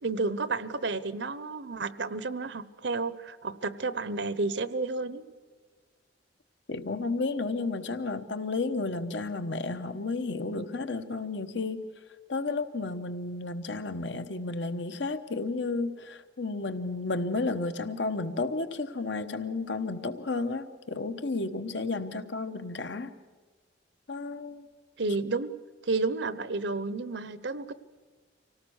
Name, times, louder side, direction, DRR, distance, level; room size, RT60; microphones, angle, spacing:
voice 1, 0.0-5.2 25.0-25.5 25.8-27.7, right 3 dB, 70° right, 14 dB, 0.9 m, -31 dB
voice 2, 6.7-11.8 12.3-23.1 24.1-24.7, left 3 dB, 75° left, 9 dB, 1.2 m, -32 dB
25.5 x 18.0 x 6.5 m, 1.5 s
head